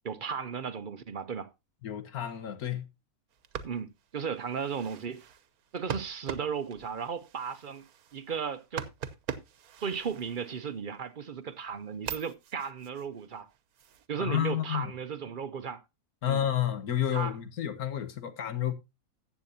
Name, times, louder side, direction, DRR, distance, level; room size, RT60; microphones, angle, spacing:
voice 1, 0.0-1.5 3.6-5.2 5.7-7.8 8.1-8.9 9.8-13.5 14.1-15.8 16.3-16.4 17.1-17.4, right 6 dB, 50° right, 0.7 m, -35 dB
voice 2, 1.8-2.9 14.2-14.9 16.2-18.7, left 10 dB, 75° left, 1.7 m, -30 dB
sound 1, 3.3-11.0 11.4-14.1, right 8 dB, 75° right, 1.3 m, -43 dB
14.5 x 8.3 x 2.7 m
omnidirectional pair, 1.6 m